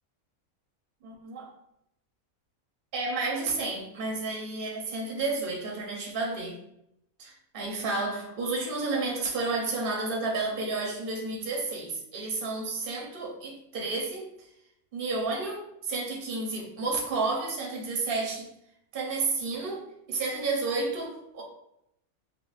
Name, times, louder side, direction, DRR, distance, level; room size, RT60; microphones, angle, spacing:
voice 1, 1.0-1.5 2.9-6.6 7.2-14.3 14.9-18.5 18.9-21.4, right 3 dB, 50° right, -2 dB, 0.8 m, -31 dB
5.0 x 2.1 x 2.4 m, 0.77 s
omnidirectional pair, 1.5 m